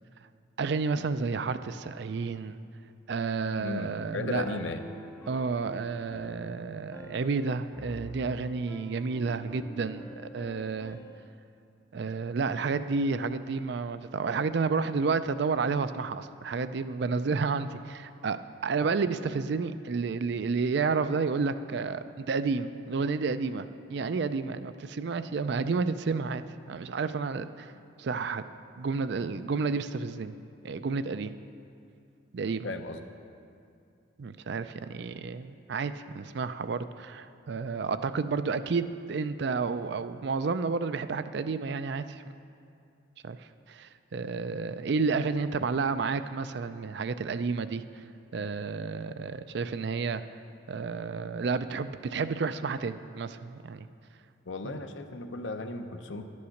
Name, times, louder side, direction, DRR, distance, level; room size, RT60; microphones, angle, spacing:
voice 1, 0.6-2.6 3.1-4.6 5.3-10.1 10.3-11.0 11.9-27.7 28.0-28.4 28.8-30.4 30.6-31.3 32.3-32.7 34.2-42.2 43.2-47.8 48.3-50.2 50.7-53.9 54.6-54.8, right 4 dB, 55° right, 12 dB, 0.4 m, -31 dB
voice 2, 3.6-4.8 32.6-33.0 54.5-56.2, left 3 dB, 65° left, 7 dB, 0.7 m, -35 dB
Piano, 4.4-11.3, equal, 10° left, 0.5 m, -47 dB
11.5 x 8.6 x 6.4 m, 2.5 s
head